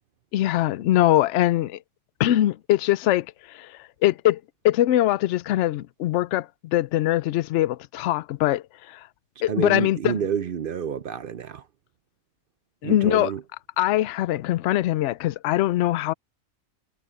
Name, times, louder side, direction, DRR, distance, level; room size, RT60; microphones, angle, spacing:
voice 1, 0.3-1.8 2.2-9.1 9.4-10.1 12.8-13.3 13.8-16.1, left 14 dB, 65° left, 0.8 m, -22 dB
voice 2, 9.5-11.7 12.8-13.4, right 8 dB, 55° right, 0.6 m, -29 dB
omnidirectional pair, 1.4 m